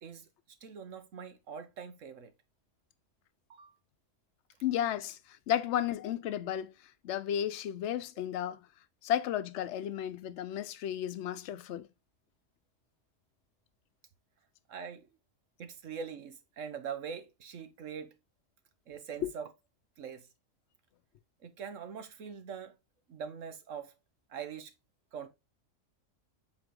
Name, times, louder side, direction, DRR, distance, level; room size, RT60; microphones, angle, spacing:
voice 1, 0.6-2.3 3.5-3.7 5.6-5.7 14.7-15.1 15.6-18.1 18.9-19.5 20.0-20.3 21.4-22.8 23.1-23.9 24.3-24.7 25.1-25.3, right 7 dB, 75° right, 1.4 m, -43 dB
voice 2, 4.6-6.7 7.0-8.7 9.0-11.9 19.2-19.3, left 10 dB, 65° left, 0.9 m, -33 dB
7.8 x 4.2 x 3.7 m
omnidirectional pair, 1.3 m